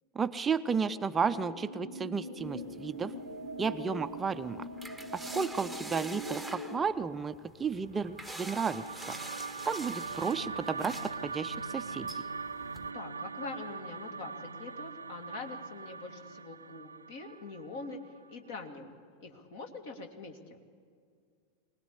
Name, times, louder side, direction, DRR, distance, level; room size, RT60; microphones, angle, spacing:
voice 1, 0.1-3.1 3.6-4.6 5.1-9.2 9.6-12.1, right 5 dB, 15° right, 11 dB, 0.5 m, -33 dB
sound 1, 0.6-6.8, equal, 80° left, 3.1 m, -43 dB
sound 2, 2.4-12.9, right 1 dB, ahead, 1.1 m, -47 dB
sound 3, 8.0-18.3, right 4 dB, 75° right, 0.5 m, -41 dB
voice 2, 12.9-18.0 18.3-18.9 19.2-20.6, left 3 dB, 55° left, 5 dB, 2.3 m, -44 dB
24.5 x 19.0 x 8.5 m, 2.2 s
figure-of-eight pair, 90°, 0 cm